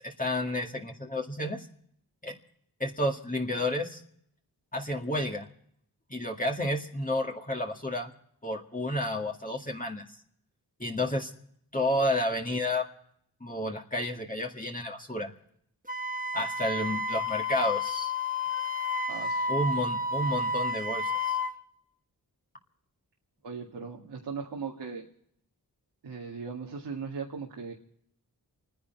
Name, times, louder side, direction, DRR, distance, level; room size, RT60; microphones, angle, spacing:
voice 1, 0.0-1.7 2.2-2.4 2.8-4.0 4.7-5.5 6.1-8.1 8.4-10.0 10.8-11.3 11.7-12.9 13.4-15.3 16.3-18.1 19.5-21.4, left 1 dB, 20° left, 1 dB, 2.0 m, -31 dB
Wind instrument woodwind instrument, 15.9-21.5, left 2 dB, 20° right, 1.3 m, -31 dB
voice 2, 19.1-19.5 23.4-25.0 26.0-27.7, right 5 dB, 85° right, -1 dB, 2.0 m, -38 dB
29.0 x 10.0 x 4.5 m, 0.69 s
cardioid pair, 55°, 39 cm